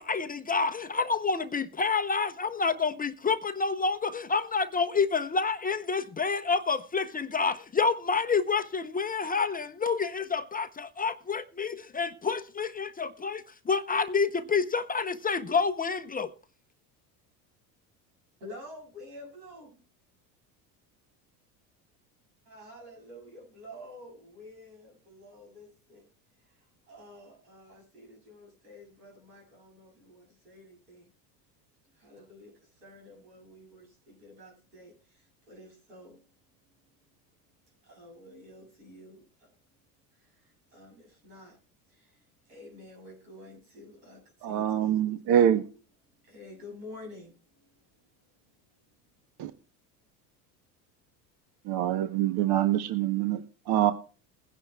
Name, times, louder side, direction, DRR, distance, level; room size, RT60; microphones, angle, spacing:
voice 1, 0.0-16.3, left 5 dB, 20° left, 0.6 m, -28 dB
voice 2, 18.4-19.8 22.4-26.1 26.4-31.1 31.9-36.2 37.8-39.5 40.1-41.6 41.9-45.5 46.2-47.3, left 1 dB, 90° right, 7.3 m, -50 dB
voice 3, 44.4-45.6 49.4-49.5 51.6-53.9, right 10 dB, 50° right, 1.0 m, -25 dB
21.5 x 10.5 x 2.3 m
hypercardioid pair, 85°, 47 cm